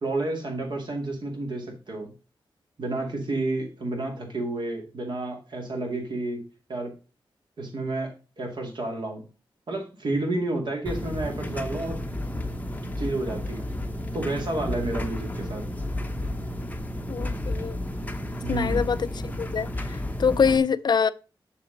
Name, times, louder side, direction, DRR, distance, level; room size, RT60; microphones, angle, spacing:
voice 1, 0.0-2.1 2.8-6.4 6.7-6.9 7.6-8.1 8.4-9.2 9.7-12.0 13.0-13.7 14.1-15.6 18.4-18.9, right 2 dB, 60° right, 2.3 m, -30 dB
sound 1, 10.9-20.6, left 1 dB, 20° left, 0.7 m, -32 dB
voice 2, 17.1-17.8 18.5-19.1 19.4-21.1, left 6 dB, 50° left, 0.4 m, -24 dB
6.9 x 6.8 x 3.9 m
wide cardioid pair, 145°, 9 cm